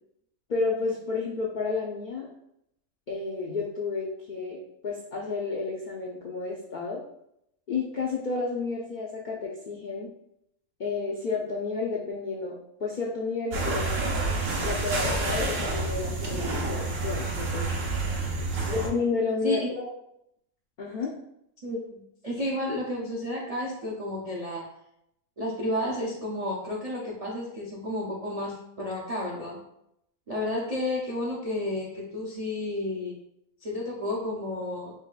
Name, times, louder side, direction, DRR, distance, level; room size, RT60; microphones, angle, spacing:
voice 1, 0.5-2.3 3.1-7.0 7.7-10.1 10.8-14.0 14.6-17.7 18.7-19.7 20.8-21.1, left 4 dB, 80° left, -3 dB, 0.4 m, -31 dB
sound 1, 13.5-18.9, right 2 dB, 80° right, 1.2 m, -28 dB
voice 2, 18.3-18.9 19.4-19.7 21.6-24.6 25.4-29.6 30.3-33.2 33.6-34.9, left 1 dB, 65° right, -4 dB, 0.3 m, -32 dB
5.3 x 2.2 x 2.3 m, 0.77 s
omnidirectional pair, 1.5 m